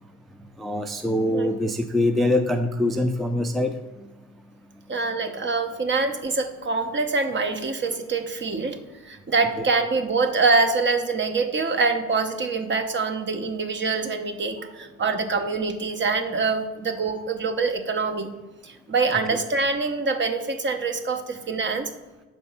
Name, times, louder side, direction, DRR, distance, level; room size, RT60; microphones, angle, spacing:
voice 1, 0.6-3.7, left 1 dB, ahead, 6 dB, 0.4 m, -23 dB
voice 2, 4.9-8.8 9.0-18.3 18.6-21.9, right 4 dB, 40° right, 7 dB, 0.8 m, -25 dB
5.7 x 4.3 x 5.5 m, 1.1 s
cardioid pair, 90°, 30 cm